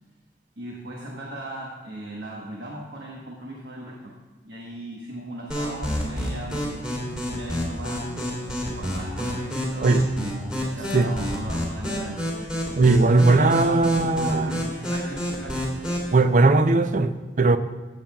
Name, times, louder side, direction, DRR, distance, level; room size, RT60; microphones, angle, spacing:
voice 1, 0.6-4.2 4.4-6.9 7.3-8.1 8.7-12.5 12.9-15.7, right 1 dB, 70° right, -2 dB, 1.3 m, -37 dB
sound 1, 5.5-16.1, equal, 5° right, 2.7 m, -29 dB
voice 2, 12.8-14.5 16.1-17.6, right 3 dB, 45° right, 11 dB, 0.4 m, -18 dB
14.5 x 8.7 x 2.3 m, 1.3 s
head